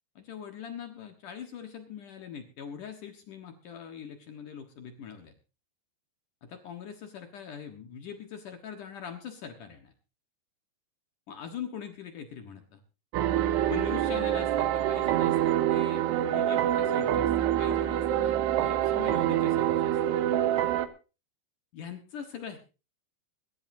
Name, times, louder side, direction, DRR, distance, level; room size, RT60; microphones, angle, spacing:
voice 1, 0.2-5.3 6.4-9.9 11.3-12.8 13.7-20.0 21.7-22.6, left 8 dB, 60° left, 5 dB, 2.3 m, -42 dB
sound 1, 13.1-20.9, right 11 dB, 75° right, 2.9 m, -26 dB
23.0 x 12.5 x 2.7 m, 0.32 s
omnidirectional pair, 5.3 m